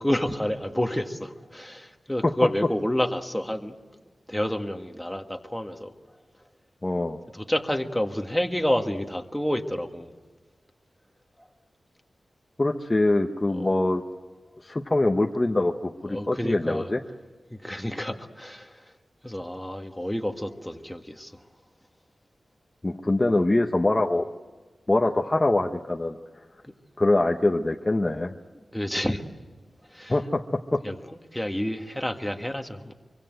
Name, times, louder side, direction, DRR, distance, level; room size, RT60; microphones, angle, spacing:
voice 1, 0.0-4.0 4.3-5.9 7.3-10.1 11.4-11.5 13.5-13.7 16.1-16.9 17.5-18.9 19.2-21.4 23.0-23.2 26.6-26.7 28.7-29.2 29.9-30.1 30.8-31.0 31.3-32.9, left 1 dB, 5° left, 5 dB, 1.7 m, -29 dB
voice 2, 6.8-7.2 12.6-14.0 14.6-17.0 22.8-24.3 24.9-26.2 27.0-28.3 30.1-30.4 30.7-30.8, left 2 dB, 25° left, 3 dB, 1.0 m, -23 dB
25.0 x 24.5 x 8.0 m, 1.3 s
wide cardioid pair, 115°, 0 cm